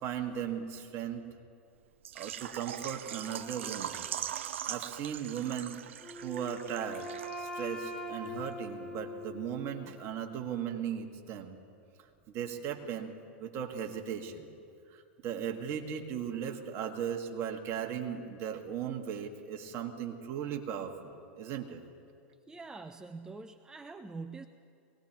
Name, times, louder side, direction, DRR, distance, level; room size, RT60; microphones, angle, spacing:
voice 1, 0.0-1.2 2.2-4.1 4.7-5.8 6.2-7.1 7.4-11.6 12.3-13.1 13.4-14.5 14.9-21.8, right 8 dB, 45° right, 3 dB, 1.7 m, -37 dB
Water / Liquid, 2.1-7.7 7.9-8.0 8.5-8.6, right 10 dB, 80° right, 0.5 m, -41 dB
Wind instrument woodwind instrument, 6.0-9.9, left 1 dB, 10° left, 2.1 m, -42 dB
voice 2, 22.5-24.5, right 3 dB, 10° right, 9 dB, 0.5 m, -44 dB
23.5 x 18.5 x 3.0 m, 2.5 s
hypercardioid pair, 100°, 7 cm